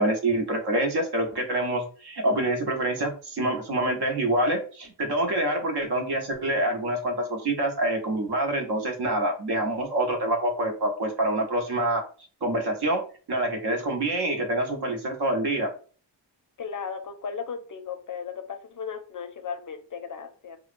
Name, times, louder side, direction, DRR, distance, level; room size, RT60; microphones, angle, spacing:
voice 1, 0.0-12.0 12.4-13.0 13.3-15.7, right 1 dB, 60° right, 0.8 m, -26 dB
voice 2, 16.6-20.6, left 6 dB, 45° left, 0.5 m, -36 dB
2.8 x 2.0 x 2.4 m
cardioid pair, 65°, 44 cm